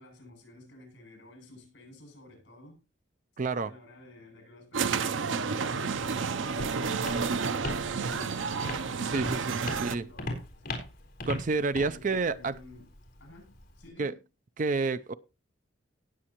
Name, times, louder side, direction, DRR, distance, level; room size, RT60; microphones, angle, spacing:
voice 1, 0.0-2.8 3.5-10.9 11.8-12.9 13.2-14.2, left 2 dB, 65° left, 7.9 m, -52 dB
voice 2, 3.4-3.7 9.1-10.1 11.3-12.6 14.0-14.1 14.6-15.1, right 3 dB, 45° right, 0.5 m, -29 dB
sound 1, 4.7-9.9, right 5 dB, 85° right, 0.7 m, -30 dB
Walk footsteps, 5.9-13.9, left 1 dB, 50° left, 4.0 m, -40 dB
18.5 x 7.4 x 3.0 m
head